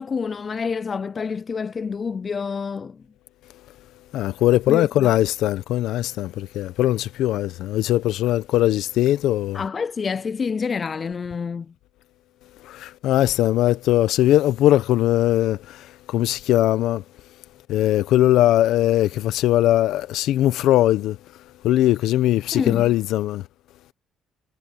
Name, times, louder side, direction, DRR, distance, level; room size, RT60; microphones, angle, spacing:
voice 1, 0.0-3.0 4.7-5.1 9.5-11.7 22.5-22.9, left 5 dB, 35° left, 0.3 m, -28 dB
voice 2, 4.1-9.6 12.6-17.0 17.7-21.2 21.6-23.4, left 14 dB, 75° left, 1.0 m, -20 dB
cardioid pair, 90°, 0 cm